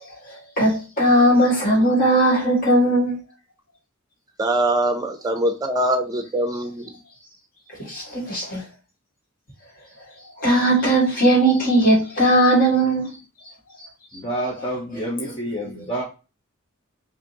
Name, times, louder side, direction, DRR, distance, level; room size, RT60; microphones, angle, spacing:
voice 1, 0.6-3.2 7.8-8.6 10.4-13.1, right 1 dB, 45° left, 1.9 m, -18 dB
voice 2, 4.4-6.9, right 1 dB, 20° right, 0.7 m, -23 dB
voice 3, 14.1-16.0, right 1 dB, 25° left, 0.8 m, -28 dB
4.9 x 2.6 x 2.9 m
head